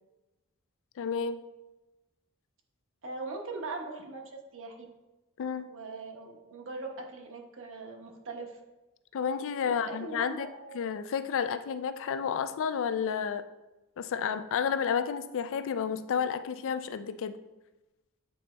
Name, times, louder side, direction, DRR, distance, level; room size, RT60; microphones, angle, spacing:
voice 1, 1.0-1.4 5.4-5.7 9.1-10.5 10.7-13.4 14.0-17.4, left 7 dB, 60° left, 12 dB, 0.4 m, -31 dB
voice 2, 3.0-4.8 5.7-8.6 9.6-10.8, right 3 dB, 60° right, 1 dB, 1.0 m, -40 dB
8.4 x 4.0 x 3.3 m, 1.0 s
head